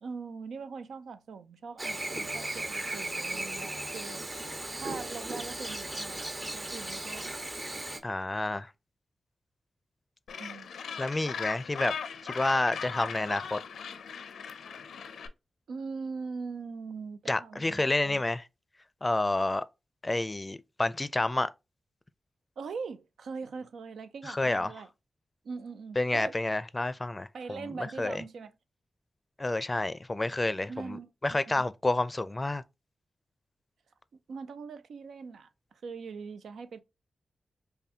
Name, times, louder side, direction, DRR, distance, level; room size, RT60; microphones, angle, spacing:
voice 1, 0.0-4.3 4.8-6.2 6.5-7.3 10.4-10.7 15.7-18.2 22.6-24.9 25.4-26.4 27.3-28.5 30.7-31.1 31.5-31.6 34.3-36.8, right 5 dB, 80° right, 0.4 m, -41 dB
Chirp tweet / Buzz, 1.8-8.0, right 1 dB, 40° right, 1.4 m, -36 dB
voice 2, 8.0-8.7 11.0-12.0 12.2-13.6 17.3-18.5 19.0-19.6 20.0-21.5 24.2-24.7 26.0-28.2 29.4-32.6, left 2 dB, 30° left, 0.5 m, -29 dB
Gull seagull, 10.3-15.3, left 7 dB, 85° left, 0.5 m, -39 dB
5.4 x 2.2 x 2.8 m
supercardioid pair, 40°, 0 cm